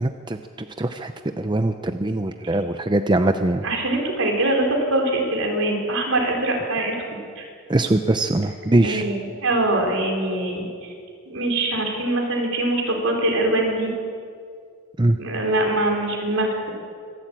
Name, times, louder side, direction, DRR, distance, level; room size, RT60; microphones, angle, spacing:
voice 1, 0.0-3.6 7.7-9.0 15.0-15.2, right 2 dB, 20° right, 7 dB, 0.6 m, -22 dB
voice 2, 3.6-7.5 8.8-10.9 11.3-13.9 15.2-16.7, right 1 dB, 70° right, 1 dB, 4.5 m, -23 dB
25.0 x 12.5 x 8.8 m, 2.3 s
head